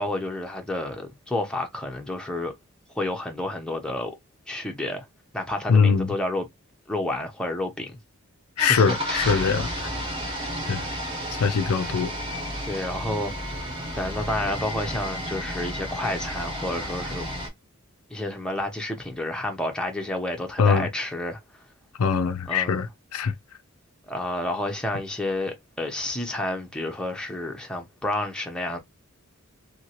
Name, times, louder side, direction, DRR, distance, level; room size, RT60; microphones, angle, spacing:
voice 1, 0.0-2.5 3.0-4.1 4.5-5.1 5.3-6.5 6.9-8.0 8.7-9.6 12.7-17.3 18.1-21.4 22.5-22.8 24.1-28.8, left 1 dB, 5° left, 0.8 m, -30 dB
voice 2, 5.7-6.1 8.6-9.9 10.7-10.8 11.4-12.1 20.6-20.9 22.0-22.9 23.1-23.3, left 5 dB, 80° left, 0.5 m, -22 dB
sound 1, 8.6-17.5, equal, 25° right, 1.2 m, -32 dB
2.9 x 2.8 x 2.9 m
head